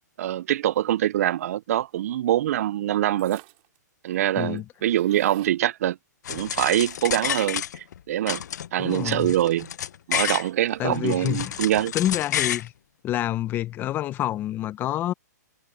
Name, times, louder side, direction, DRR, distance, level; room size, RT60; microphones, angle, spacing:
voice 1, 0.2-3.4 4.0-6.0 6.3-8.4 8.7-9.7 10.1-11.9, right 12 dB, 55° right, 0.4 m, -24 dB
sound 1, 3.2-3.8 4.1-4.2 4.4-5.6 6.8-7.8, right 28 dB, 35° right, 5.8 m, -50 dB
sound 2, 6.2-8.0 8.3-10.5 10.9-12.7, left 10 dB, 70° left, 0.6 m, -30 dB
voice 2, 8.8-9.3 10.8-11.5 11.9-12.7 13.0-15.1, left 13 dB, 20° left, 0.9 m, -27 dB
hypercardioid pair, 145°, 10 cm